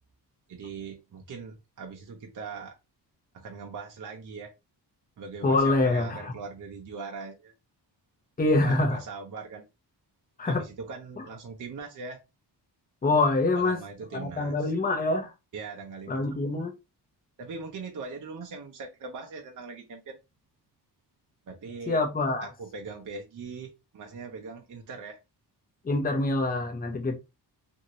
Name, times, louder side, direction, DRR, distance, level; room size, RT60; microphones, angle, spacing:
voice 1, 0.5-2.7 3.3-4.5 5.2-7.5 8.5-9.6 10.4-12.2 13.5-14.7 15.5-16.3 17.4-20.2 21.5-22.0 22.4-25.2, right 4 dB, 50° right, 0.7 m, -40 dB
voice 2, 5.4-6.2 8.4-9.0 10.4-10.6 13.0-13.8 14.1-15.3 16.1-16.7 21.9-22.5 25.8-27.2, left 2 dB, 20° left, 0.6 m, -25 dB
2.9 x 2.7 x 2.7 m
wide cardioid pair, 105°, 42 cm